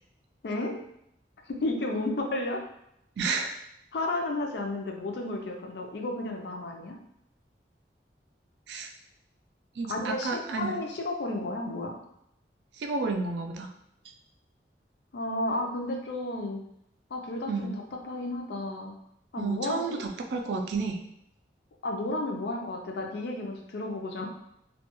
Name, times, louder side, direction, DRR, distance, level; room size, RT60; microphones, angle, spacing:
voice 1, 0.4-0.8 1.5-2.6 3.9-7.0 9.9-12.0 15.1-16.6 17.1-19.0 19.3-20.0 21.8-24.3, left 2 dB, 70° left, 2 dB, 0.4 m, -32 dB
voice 2, 3.2-3.6 8.7-8.9 9.8-10.8 12.8-13.7 17.5-17.8 19.4-21.0, right 4 dB, 75° right, 3 dB, 0.3 m, -31 dB
2.2 x 2.2 x 2.9 m, 0.77 s
head